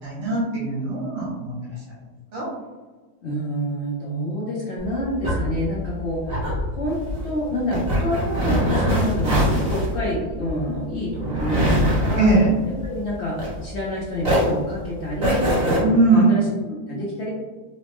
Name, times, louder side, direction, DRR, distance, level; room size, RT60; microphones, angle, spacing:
voice 1, 0.0-1.5 2.3-2.5 12.2-12.5 15.8-16.3, right 3 dB, 90° right, -6 dB, 2.1 m, -20 dB
voice 2, 3.2-12.3 12.6-17.3, equal, 70° left, -5 dB, 0.6 m, -28 dB
sound 1, 4.8-13.9 14.2-15.8, equal, 35° right, 1.2 m, -23 dB
4.2 x 2.1 x 2.9 m, 1.3 s
omnidirectional pair, 2.0 m